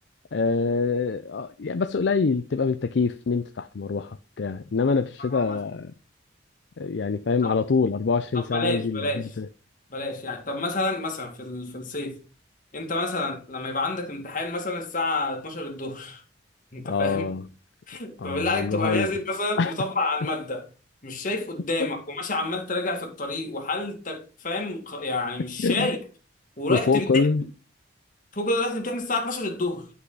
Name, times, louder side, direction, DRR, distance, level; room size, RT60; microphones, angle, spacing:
voice 1, 0.3-5.9 6.8-9.5 16.8-17.5 18.2-19.1 19.6-19.7 25.6-25.9 26.7-27.4, left 4 dB, 65° left, 0.5 m, -25 dB
voice 2, 5.2-5.6 7.4-7.6 8.3-9.3 9.9-12.2 12.7-16.2 16.7-17.3 17.9-20.7 21.0-26.0 26.6-27.2 28.3-29.9, left 2 dB, 45° left, 2.1 m, -29 dB
10.0 x 5.8 x 3.9 m
head